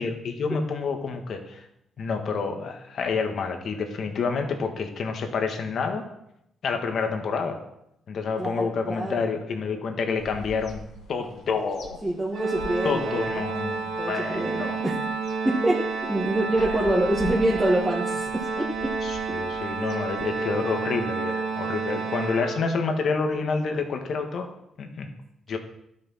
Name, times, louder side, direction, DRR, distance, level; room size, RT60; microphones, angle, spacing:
voice 1, 0.0-1.6 2.0-6.0 6.6-7.6 8.1-10.8 11.1-12.0 12.8-14.9 19.0-24.5 24.8-25.1 25.5-25.6, left 4 dB, 60° left, 5 dB, 1.8 m, -28 dB
voice 2, 8.4-9.2 12.0-13.5 14.0-15.0 15.4-18.9, right 1 dB, 10° right, -5 dB, 2.0 m, -26 dB
sound 1, 10.2-20.3, left 2 dB, 75° left, 3.9 m, -44 dB
Organ, 12.3-23.1, right 4 dB, 80° right, 2.6 m, -30 dB
12.0 x 6.8 x 5.8 m, 0.80 s
cardioid pair, 90°, 0 cm